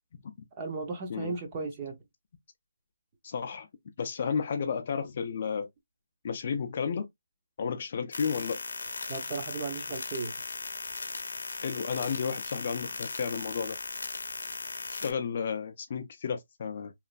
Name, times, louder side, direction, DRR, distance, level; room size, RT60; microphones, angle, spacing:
voice 1, 0.6-2.0 9.1-10.3, right 3 dB, 20° right, 0.5 m, -35 dB
voice 2, 1.1-1.4 3.2-3.7 4.0-5.7 6.2-7.1 7.6-8.6 11.6-13.8 14.9-16.9, left 6 dB, 35° left, 0.3 m, -32 dB
sound 1, 8.1-15.1, left 3 dB, 75° left, 0.6 m, -38 dB
3.0 x 2.4 x 2.4 m
hypercardioid pair, 175°, 0 cm